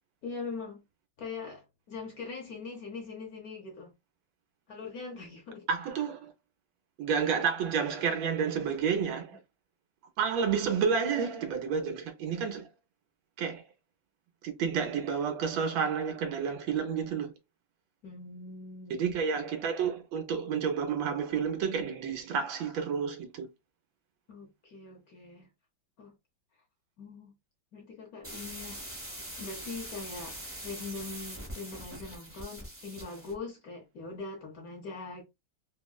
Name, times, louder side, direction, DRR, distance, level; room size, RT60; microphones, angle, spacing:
voice 1, 0.2-0.8 1.2-3.9 4.7-5.6 18.0-19.1 24.3-25.5 26.0-26.1 27.0-27.3 27.7-28.8 29.4-35.2, left 4 dB, 55° left, 1.1 m, -42 dB
voice 2, 5.7-6.3 7.0-9.4 10.2-12.7 13.4-13.6 14.4-17.3 18.9-23.5, right 6 dB, 75° right, 1.3 m, -30 dB
sound 1, 28.2-33.4, right 1 dB, 15° right, 0.4 m, -43 dB
3.5 x 2.0 x 2.2 m
omnidirectional pair, 2.2 m